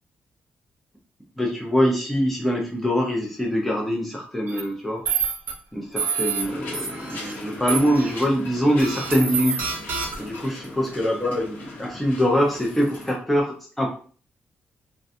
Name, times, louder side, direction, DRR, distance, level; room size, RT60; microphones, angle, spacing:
voice 1, 1.4-5.0 5.7-9.5 10.2-13.9, equal, 5° left, -2 dB, 0.5 m, -23 dB
sound 1, 4.5-4.6 5.1-5.5 6.0-6.4 6.7-7.3 7.7-8.2 8.8-10.4, right 6 dB, 75° right, 0.6 m, -27 dB
sound 2, 6.4-13.1, left 2 dB, 65° left, 0.9 m, -40 dB
2.4 x 2.2 x 2.7 m, 0.43 s
wide cardioid pair, 175°, 4 cm